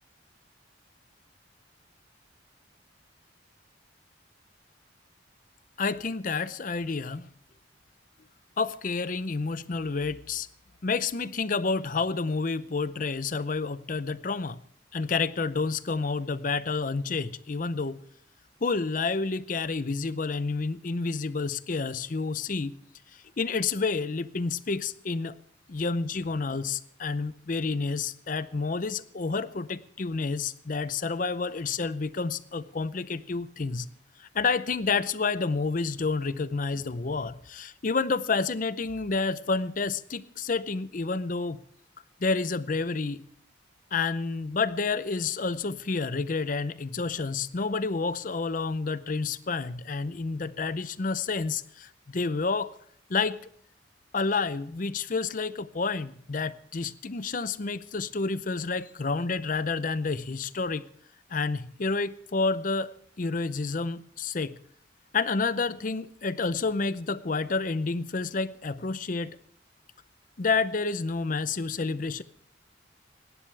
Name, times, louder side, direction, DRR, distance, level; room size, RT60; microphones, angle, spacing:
voice 1, 5.8-7.3 8.6-10.5 10.8-14.6 14.9-18.0 18.6-22.7 23.1-25.3 25.7-33.9 34.2-41.6 42.2-43.3 43.9-52.7 53.1-53.4 54.1-60.8 61.3-62.9 63.2-64.6 65.1-69.4 70.4-72.2, left 4 dB, 45° left, 0.6 m, -29 dB
27.0 x 11.0 x 3.3 m
head